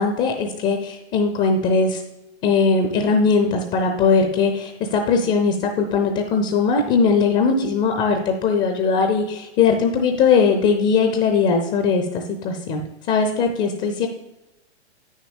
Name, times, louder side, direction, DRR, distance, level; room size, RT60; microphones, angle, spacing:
voice 1, 0.0-2.0 2.4-12.8 13.1-14.1, left 5 dB, 25° left, 5 dB, 0.6 m, -20 dB
9.2 x 6.4 x 3.5 m, 0.96 s
figure-of-eight pair, 110°, 34 cm